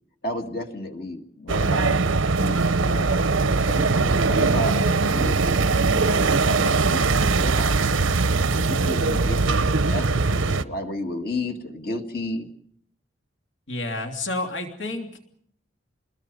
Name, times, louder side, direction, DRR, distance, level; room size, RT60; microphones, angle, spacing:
voice 1, 0.2-2.0 2.3-3.9 4.3-5.4 5.8-8.0 8.5-12.5, left 1 dB, 50° left, 4 dB, 2.0 m, -33 dB
sound 1, 1.5-10.6, right 3 dB, 90° right, 0.8 m, -21 dB
voice 2, 13.7-15.2, left 2 dB, 70° left, 3 dB, 2.9 m, -30 dB
28.5 x 21.0 x 5.4 m, 0.66 s
head